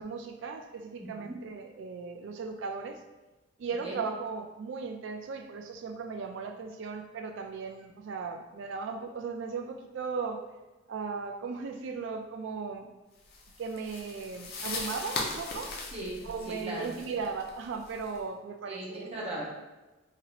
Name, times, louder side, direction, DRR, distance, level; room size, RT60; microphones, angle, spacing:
voice 1, 0.0-3.0 3.6-10.4 10.9-12.9 13.6-15.7 16.2-19.1, right 5 dB, 60° right, 5 dB, 0.3 m, -37 dB
voice 2, 1.0-1.3 3.8-4.0 15.9-17.0 18.7-19.5, right 1 dB, 30° right, -4 dB, 0.7 m, -38 dB
sound 1, 13.3-18.2, left 3 dB, 50° left, 0.5 m, -39 dB
3.2 x 2.8 x 2.4 m, 1.1 s
head